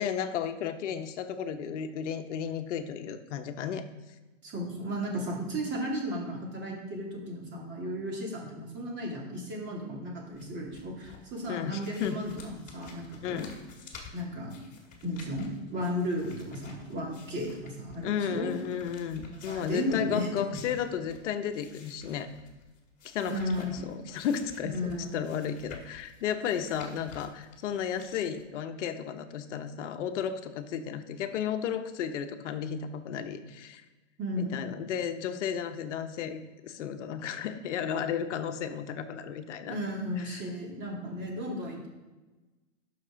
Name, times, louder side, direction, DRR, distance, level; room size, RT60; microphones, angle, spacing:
voice 1, 0.0-3.8 11.5-12.2 13.2-13.5 18.0-22.3 23.0-33.8 34.4-39.8 40.2-40.4, left 8 dB, 65° left, 8 dB, 0.9 m, -33 dB
voice 2, 4.4-13.5 14.1-14.5 15.0-18.5 19.2-20.6 23.3-23.9 24.6-25.4 34.2-34.8 39.7-41.9, equal, 30° right, -2 dB, 2.6 m, -34 dB
sound 1, 10.3-28.4, left 5 dB, 20° left, 2.0 m, -52 dB
12.0 x 6.1 x 3.8 m, 1.2 s
hypercardioid pair, 125°, 38 cm